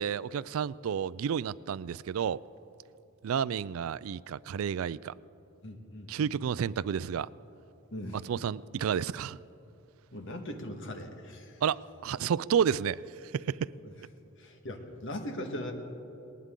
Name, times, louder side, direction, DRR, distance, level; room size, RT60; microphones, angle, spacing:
voice 1, 0.0-2.4 3.2-5.1 6.1-7.3 8.2-9.4 11.6-13.0 13.3-13.7, right 8 dB, 85° right, 0.4 m, -31 dB
voice 2, 5.6-6.3 7.9-8.2 10.1-11.6 14.4-15.7, left 1 dB, 65° left, 1.7 m, -40 dB
20.0 x 19.5 x 3.8 m
head